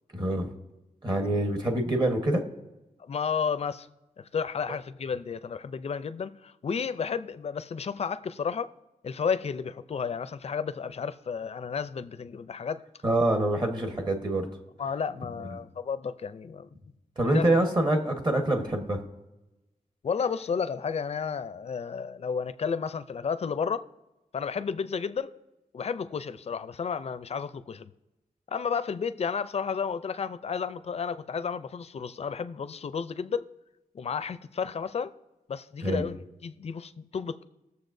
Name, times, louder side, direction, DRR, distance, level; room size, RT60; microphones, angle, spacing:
voice 1, 0.1-0.5 1.0-2.4 13.0-14.5 17.2-19.0 35.8-36.1, right 1 dB, 35° right, 1.3 m, -25 dB
voice 2, 3.1-3.9 4.2-8.7 9.0-12.8 14.8-16.7 17.2-17.5 20.0-23.8 24.3-25.3 25.7-27.9 28.5-33.5 33.9-35.1 35.5-37.4, left 6 dB, 50° left, 0.4 m, -32 dB
20.0 x 6.8 x 2.6 m
wide cardioid pair, 125°, 14 cm